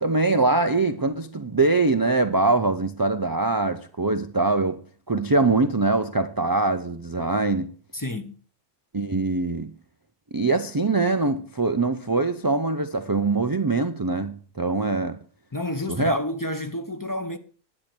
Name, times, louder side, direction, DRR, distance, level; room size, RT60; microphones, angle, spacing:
voice 1, 0.0-4.8 5.1-7.7 8.9-9.7 10.3-15.2 16.0-16.2, right 3 dB, 35° right, 0.3 m, -23 dB
voice 2, 7.9-8.4 15.5-17.4, left 1 dB, 20° left, 0.7 m, -30 dB
11.0 x 8.8 x 6.1 m
omnidirectional pair, 1.4 m